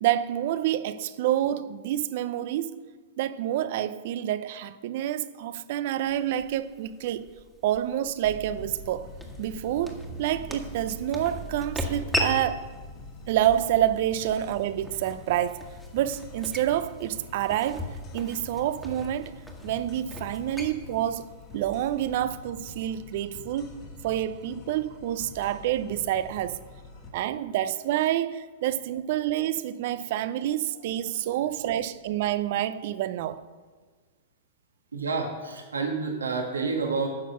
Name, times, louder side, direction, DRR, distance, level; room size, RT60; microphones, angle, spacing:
voice 1, 0.0-2.8 3.2-7.3 7.6-9.1 9.4-12.7 13.3-15.6 15.9-19.3 19.6-21.3 21.5-26.6 27.1-33.4, right 12 dB, 55° right, 0.6 m, -28 dB
sound 1, 6.1-22.2, equal, ahead, 1.6 m, -39 dB
sound 2, 8.2-27.1, left 1 dB, 40° left, 2.0 m, -44 dB
voice 2, 34.9-37.1, right 4 dB, 90° right, 1.7 m, -29 dB
10.5 x 6.5 x 5.7 m
hypercardioid pair, 110°, 0 cm